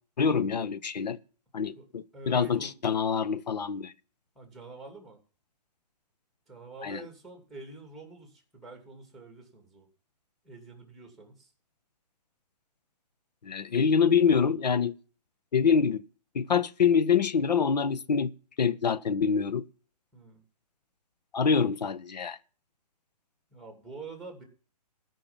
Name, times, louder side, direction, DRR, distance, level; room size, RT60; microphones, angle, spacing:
voice 1, 0.2-1.2 1.5-3.9 6.8-7.0 13.4-14.9 15.5-16.0 16.3-18.3 18.6-19.6 21.3-22.4, left 6 dB, 90° left, 1.0 m, -25 dB
voice 2, 2.1-2.8 4.3-5.2 6.5-9.9 10.4-11.5 20.1-20.4 23.5-24.4, right 3 dB, ahead, 2.8 m, -46 dB
15.0 x 5.9 x 7.2 m
hypercardioid pair, 155°, 21 cm